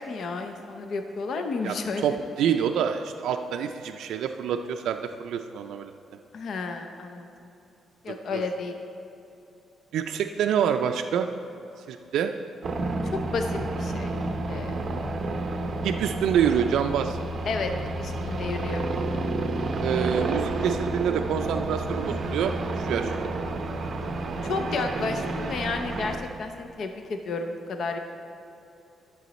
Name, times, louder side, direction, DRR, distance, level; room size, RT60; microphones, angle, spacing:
voice 1, 0.0-2.1 6.3-7.3 8.0-8.7 13.3-14.1 14.5-14.8 17.5-17.7 18.0-18.9 24.4-28.0, left 4 dB, 55° left, 6 dB, 0.6 m, -31 dB
voice 2, 1.6-5.9 8.3-8.4 9.9-11.3 11.9-12.3 15.8-17.2 19.8-23.3, right 8 dB, 90° right, 5 dB, 0.3 m, -27 dB
sound 1, 12.6-26.2, right 2 dB, 40° right, 0.6 m, -30 dB
11.5 x 6.9 x 4.1 m, 2.8 s
cardioid pair, 155°, 0 cm